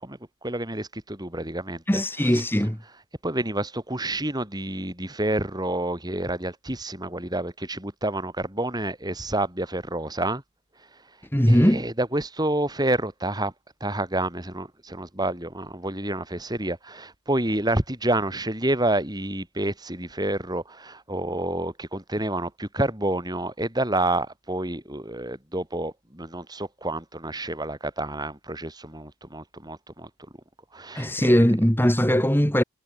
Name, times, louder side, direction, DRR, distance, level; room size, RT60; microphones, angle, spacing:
voice 1, 0.4-1.8 3.2-10.4 11.5-13.5 13.8-30.1 30.7-31.3, right 1 dB, 20° right, 4.2 m, -28 dB
voice 2, 1.9-2.8 11.3-11.8 30.9-32.6, equal, 10° left, 2.1 m, -20 dB
head